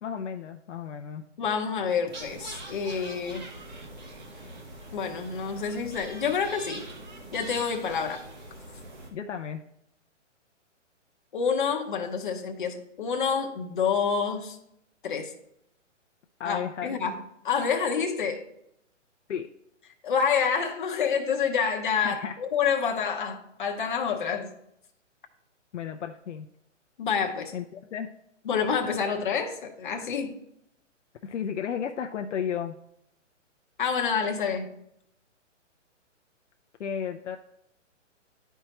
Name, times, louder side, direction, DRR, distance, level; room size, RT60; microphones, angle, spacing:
voice 1, 0.0-1.2 9.1-9.6 16.4-17.0 19.3-19.5 22.0-22.4 25.7-26.5 27.5-28.1 31.2-32.8 36.8-37.4, left 8 dB, 70° left, 4 dB, 0.6 m, -33 dB
voice 2, 1.4-3.4 4.9-6.8 7.3-8.2 11.3-14.6 15.0-15.3 16.4-17.2 17.4-18.4 20.0-24.5 27.0-27.5 28.4-30.3 33.8-34.7, left 6 dB, 40° left, 3 dB, 0.8 m, -28 dB
sound 1, 2.1-9.1, right 2 dB, 35° right, 1.1 m, -43 dB
11.0 x 4.6 x 2.9 m, 0.77 s
hypercardioid pair, 175°, 38 cm